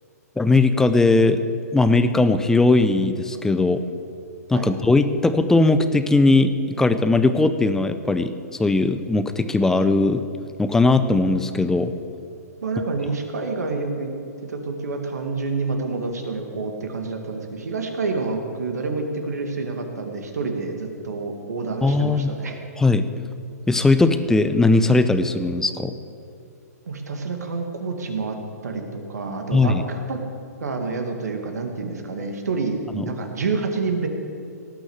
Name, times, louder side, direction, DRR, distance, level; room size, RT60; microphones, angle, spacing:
voice 1, 0.4-1.4 1.7-3.8 4.5-8.3 8.6-10.2 10.6-11.9 21.8-22.3 22.8-23.1 23.7-25.9 29.5-29.8 33.0-33.1, left 3 dB, 5° left, 10 dB, 0.6 m, -19 dB
voice 2, 12.6-14.1 14.4-22.6 26.9-28.4 28.6-30.2 30.6-34.1, right 3 dB, 70° right, 4 dB, 2.1 m, -28 dB
17.5 x 6.3 x 8.0 m, 2.4 s
hypercardioid pair, 125°, 9 cm